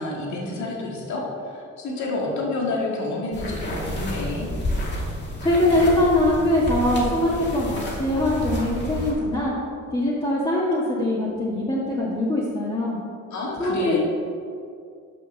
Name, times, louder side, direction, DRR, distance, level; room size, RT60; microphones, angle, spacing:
voice 1, 0.0-4.5 13.3-14.0, left 2 dB, 70° left, -2 dB, 2.1 m, -29 dB
sound 1, 3.3-9.1, left 1 dB, 35° left, 2.3 m, -30 dB
voice 2, 5.4-9.5 9.9-13.0 13.6-14.0, left 1 dB, 15° left, -7 dB, 1.8 m, -22 dB
6.6 x 5.7 x 6.4 m, 2.3 s
cardioid pair, 90°, 30 cm